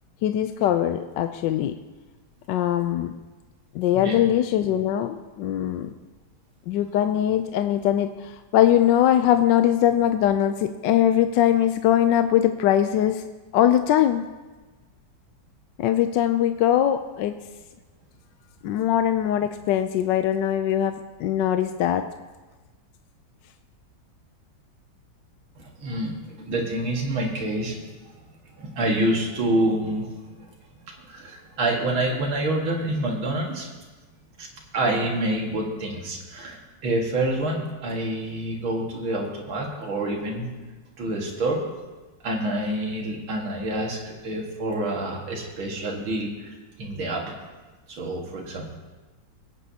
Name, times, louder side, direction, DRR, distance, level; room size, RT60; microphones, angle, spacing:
voice 1, 0.2-1.8 2.5-3.1 3.7-5.9 6.7-13.2 13.5-14.3 15.8-17.4 18.6-22.1, left 11 dB, 75° left, 9 dB, 1.1 m, -21 dB
voice 2, 25.6-28.1 28.6-30.5 30.9-33.7 34.4-34.5 34.7-40.5 41.0-41.6 42.2-47.2 47.9-48.8, right 1 dB, 80° right, 0 dB, 2.6 m, -27 dB
23.0 x 9.0 x 2.8 m, 1.2 s
omnidirectional pair, 2.2 m